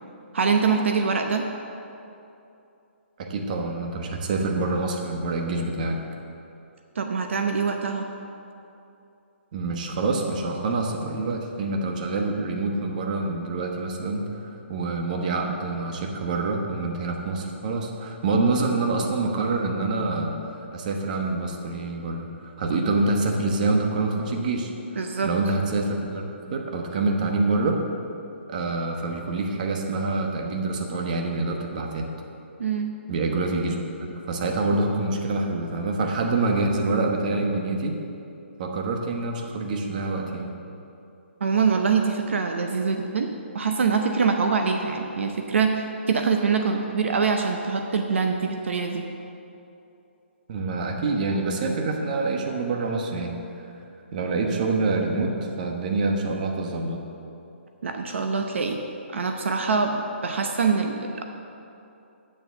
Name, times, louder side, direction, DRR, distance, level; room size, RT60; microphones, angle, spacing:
voice 1, 0.3-1.5 7.0-8.0 25.0-25.3 32.6-32.9 41.4-49.0 57.8-58.8 59.1-61.2, right 5 dB, 70° right, 4 dB, 0.8 m, -24 dB
voice 2, 3.2-6.0 9.5-20.4 20.7-24.7 25.2-26.2 26.5-27.8 28.5-32.1 33.1-33.8 34.3-38.0 38.6-40.5 50.5-53.4 54.1-57.0, right 3 dB, 40° right, 2 dB, 1.1 m, -26 dB
8.5 x 7.1 x 7.0 m, 2.7 s
hypercardioid pair, 165°, 7 cm